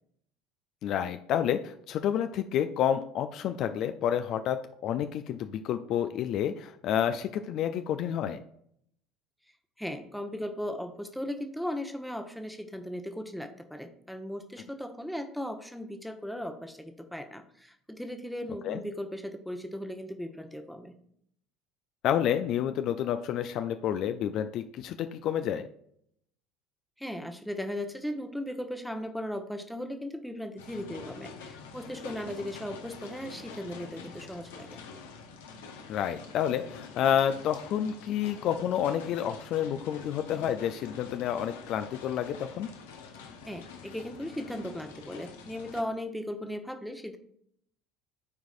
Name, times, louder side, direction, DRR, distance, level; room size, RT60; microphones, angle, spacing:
voice 1, 0.8-8.4 18.6-18.8 22.0-25.7 35.9-42.7, left 9 dB, 50° left, 9 dB, 0.4 m, -29 dB
voice 2, 9.8-20.9 27.0-34.8 43.5-47.2, equal, ahead, 7 dB, 0.9 m, -37 dB
sound 1, 30.6-45.8, left 5 dB, 70° left, 0.9 m, -46 dB
13.0 x 4.7 x 2.5 m, 0.69 s
figure-of-eight pair, 65°, 0 cm